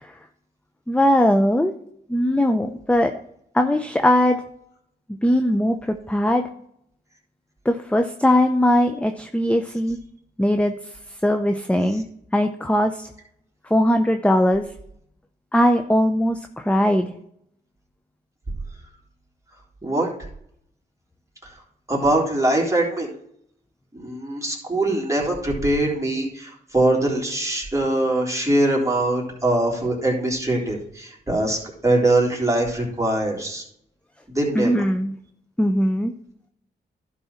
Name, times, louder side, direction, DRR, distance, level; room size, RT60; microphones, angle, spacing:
voice 1, 0.9-1.7 2.1-3.1 3.5-4.4 5.2-6.5 7.6-10.0 10.4-10.8 11.2-12.0 12.3-13.1 13.7-14.7 15.5-17.1 34.5-35.1 35.6-36.1, left 1 dB, 5° left, 6 dB, 0.8 m, -20 dB
voice 2, 21.9-23.1 23.9-33.6 34.3-34.8, right 1 dB, 15° right, -2 dB, 3.6 m, -22 dB
11.5 x 4.2 x 5.8 m, 0.68 s
cardioid pair, 50°, 18 cm